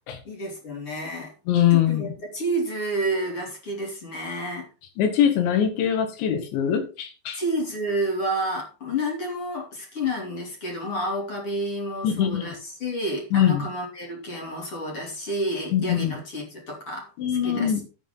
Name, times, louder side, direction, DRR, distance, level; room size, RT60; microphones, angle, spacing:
voice 1, 0.2-1.3 1.7-4.7 7.3-17.1 17.4-17.8, right 1 dB, 35° left, 0 dB, 3.1 m, -30 dB
voice 2, 1.5-2.1 5.0-7.4 12.0-12.5 13.3-13.7 15.7-16.2 17.2-17.8, left 9 dB, 80° left, 7 dB, 4.1 m, -22 dB
11.0 x 9.0 x 3.9 m, 0.33 s
omnidirectional pair, 5.3 m